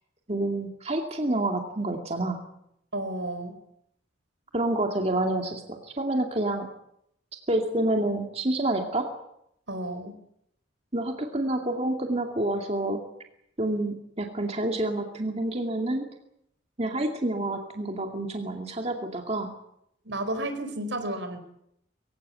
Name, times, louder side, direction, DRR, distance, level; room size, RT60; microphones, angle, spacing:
voice 1, 0.3-2.4 4.5-6.7 7.5-9.1 10.9-13.0 13.6-16.1 16.8-19.5, right 1 dB, 35° right, 3 dB, 2.4 m, -28 dB
voice 2, 2.9-3.6 9.7-10.2 20.0-21.4, right 1 dB, 80° right, 9 dB, 4.5 m, -32 dB
23.5 x 16.5 x 9.6 m, 0.76 s
head